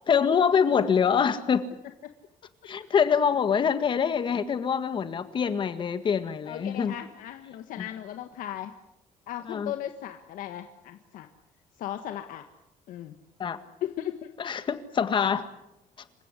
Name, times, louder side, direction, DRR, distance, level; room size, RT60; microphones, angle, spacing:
voice 1, 0.1-1.7 2.6-6.9 7.8-7.9 9.5-9.7 13.4-13.6 14.4-15.5, left 7 dB, 35° left, 11 dB, 1.8 m, -25 dB
voice 2, 6.5-8.7 9.3-11.3 11.8-12.5 12.9-13.1 13.8-14.3, left 11 dB, 80° left, 7 dB, 1.6 m, -36 dB
28.0 x 16.0 x 9.9 m, 0.82 s
cardioid pair, 165°, 14 cm